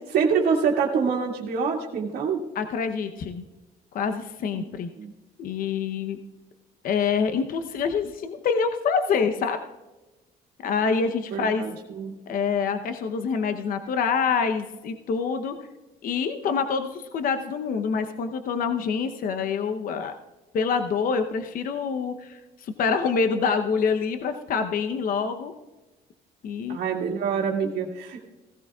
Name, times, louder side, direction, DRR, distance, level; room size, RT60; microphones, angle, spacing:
voice 1, 0.1-2.4 4.5-4.6 5.0-5.1 11.3-11.7 12.0-12.2 26.7-28.2, right 6 dB, 70° right, 0 dB, 1.9 m, -25 dB
voice 2, 2.5-3.4 3.9-4.9 5.4-6.2 6.8-9.6 10.6-11.6 12.3-15.6 16.0-20.1 20.5-25.5 26.4-26.8, left 5 dB, 55° left, 8 dB, 0.8 m, -26 dB
16.5 x 15.5 x 2.4 m, 1.1 s
cardioid pair, 110°, 17 cm